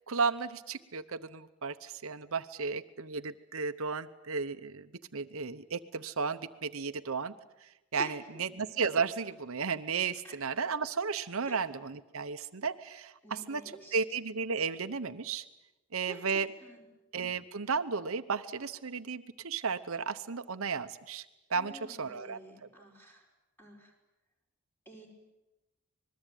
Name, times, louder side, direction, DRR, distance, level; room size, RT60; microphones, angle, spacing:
voice 1, 0.1-7.3 7.6-15.4 15.9-16.5 17.1-21.2 21.5-22.7, right 5 dB, 70° right, 10 dB, 0.9 m, -34 dB
voice 2, 8.0-8.4 10.2-10.4 11.4-11.6 13.2-14.0 16.0-16.2 16.6-16.8 21.5-23.3 23.6-23.9 24.8-25.1, right 1 dB, 10° left, 1 dB, 4.9 m, -49 dB
26.5 x 21.0 x 9.2 m, 0.99 s
head